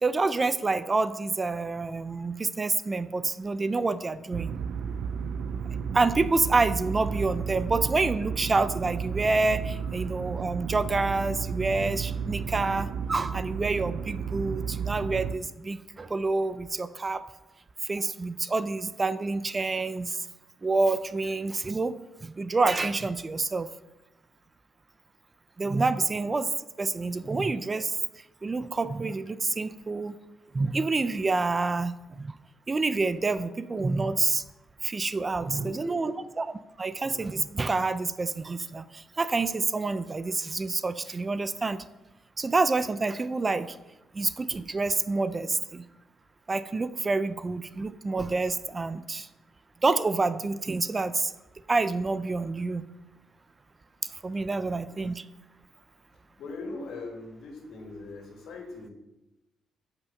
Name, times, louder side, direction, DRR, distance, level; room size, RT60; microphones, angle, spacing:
voice 1, 0.0-4.5 5.9-17.2 17.8-20.2 20.6-21.9 22.2-23.7 25.6-26.5 26.8-28.0 28.4-30.1 30.5-32.3 32.7-34.4 34.8-36.5 36.8-41.8 42.4-43.8 44.1-45.8 46.5-49.3 49.8-51.3 51.7-52.8 54.2-55.2, right 3 dB, 30° right, 13 dB, 0.6 m, -28 dB
sound 1, 4.3-15.4, right 6 dB, 75° right, 0.5 m, -33 dB
voice 2, 35.3-36.2 54.5-54.8 56.4-58.9, left 3 dB, 75° left, 2 dB, 2.5 m, -41 dB
10.0 x 6.0 x 6.4 m, 0.98 s
cardioid pair, 90°, 0 cm